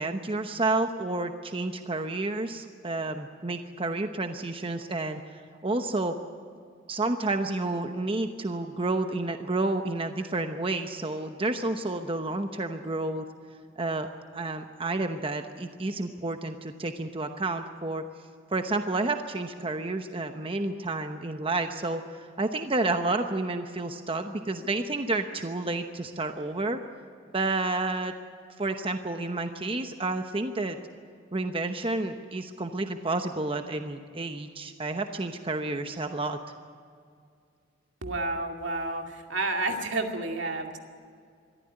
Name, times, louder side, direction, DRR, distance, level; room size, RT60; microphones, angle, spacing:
voice 1, 0.0-6.2 6.9-13.2 13.8-18.0 18.5-26.8 27.3-28.1 28.6-30.8 31.3-36.4, right 2 dB, 30° right, 7 dB, 0.9 m, -30 dB
voice 2, 38.0-40.8, right 2 dB, 80° right, 3 dB, 2.4 m, -30 dB
22.5 x 14.0 x 9.9 m, 2.2 s
head